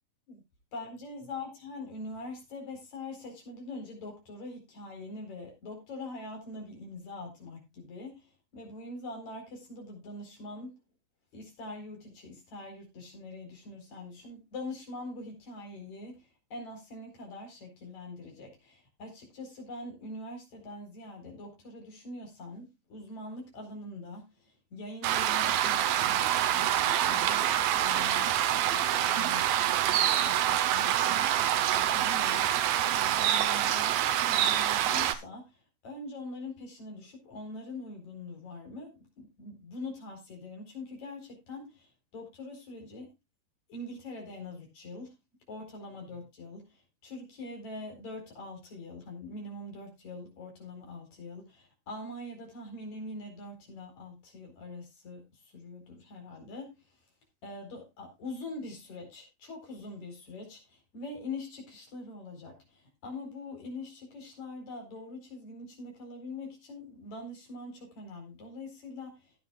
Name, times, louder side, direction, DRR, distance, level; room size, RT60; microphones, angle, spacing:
voice 1, 0.7-10.8 11.3-43.1 43.7-45.2 45.5-56.8 57.4-69.3, left 2 dB, 45° left, 5.5 m, -43 dB
sound 1, 25.0-35.2, right 11 dB, 75° right, 2.6 m, -26 dB
17.0 x 9.0 x 2.4 m
omnidirectional pair, 4.6 m